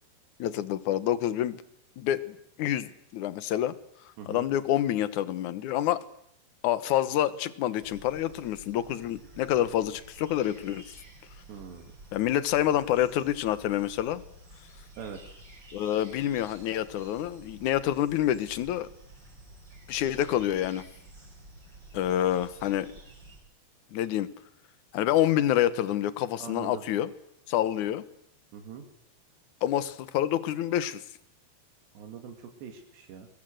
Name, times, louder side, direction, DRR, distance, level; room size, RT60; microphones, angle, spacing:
voice 1, 0.4-1.6 2.0-3.7 4.3-6.0 6.6-10.8 12.1-14.2 15.7-18.9 19.9-20.8 21.9-22.9 23.9-24.3 24.9-27.1 27.5-28.0 29.6-31.0, left 12 dB, 70° left, 14 dB, 2.0 m, -27 dB
sound 1, 7.8-23.4, right 2 dB, 25° right, 6.1 m, -51 dB
voice 2, 11.5-11.9 15.0-15.2 26.4-26.8 28.5-28.9 31.9-33.3, right 7 dB, 90° right, 4 dB, 4.4 m, -42 dB
25.5 x 22.0 x 7.7 m, 0.74 s
omnidirectional pair, 4.7 m